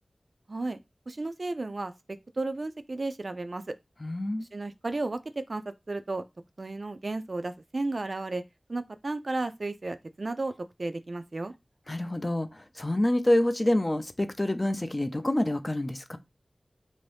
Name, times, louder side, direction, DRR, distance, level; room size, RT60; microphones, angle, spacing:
voice 1, 0.5-0.8 1.1-1.9 2.4-3.6 4.5-5.2 5.5-5.6 5.9-6.2 6.6-8.4 8.7-10.5 10.8-11.5, right 2 dB, 55° right, 0.3 m, -33 dB
voice 2, 4.0-4.5 11.9-16.2, left 1 dB, 30° left, 0.4 m, -27 dB
2.6 x 2.6 x 3.3 m
wide cardioid pair, 65°, 0 cm